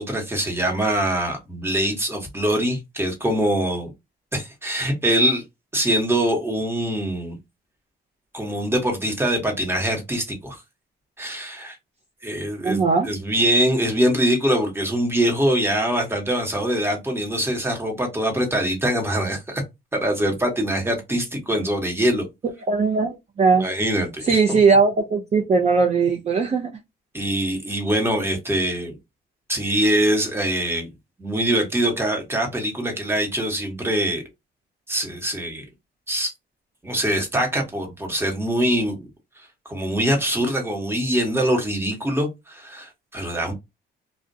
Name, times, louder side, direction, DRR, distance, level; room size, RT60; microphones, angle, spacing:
voice 1, 0.0-3.9 4.3-5.4 5.7-7.4 8.3-10.6 11.2-11.8 12.2-19.6 19.9-22.3 23.6-24.6 27.1-29.0 29.5-30.9 31.2-34.2 34.9-35.6 36.1-36.3 36.8-39.1 39.4-43.5, right 1 dB, 10° right, 1.1 m, -23 dB
voice 2, 12.6-13.1 22.7-23.7 24.2-26.7, right 4 dB, 35° right, 0.5 m, -19 dB
2.5 x 2.1 x 2.5 m
cardioid pair, 90°, 20 cm